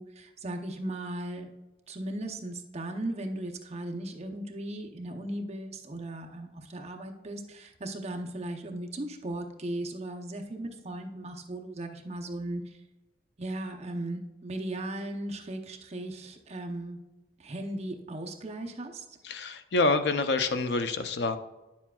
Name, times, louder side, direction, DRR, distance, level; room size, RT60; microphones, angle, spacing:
voice 1, 0.0-1.5 1.9-12.8 13.4-17.0 17.4-19.0, right 1 dB, 35° right, 3 dB, 0.7 m, -37 dB
voice 2, 19.2-21.4, left 3 dB, 65° left, 9 dB, 0.6 m, -27 dB
10.0 x 7.2 x 2.3 m, 1.1 s
head